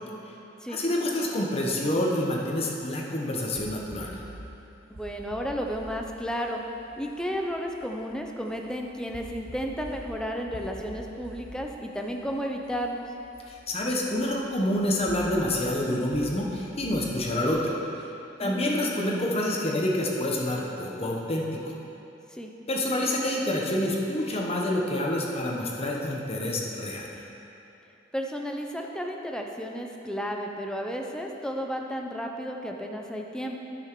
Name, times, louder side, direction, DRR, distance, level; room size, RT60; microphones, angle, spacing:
voice 1, 0.7-4.2 13.5-17.7 18.4-21.7 22.7-27.1, left 1 dB, 30° left, -1 dB, 1.0 m, -27 dB
sound 1, 3.6-17.5, right 1 dB, 55° right, 1.2 m, -47 dB
voice 2, 4.9-6.6 7.0-13.1 18.4-18.7 22.3-22.5 28.1-33.6, equal, 5° left, 2 dB, 0.6 m, -33 dB
9.9 x 5.8 x 4.6 m, 2.9 s
head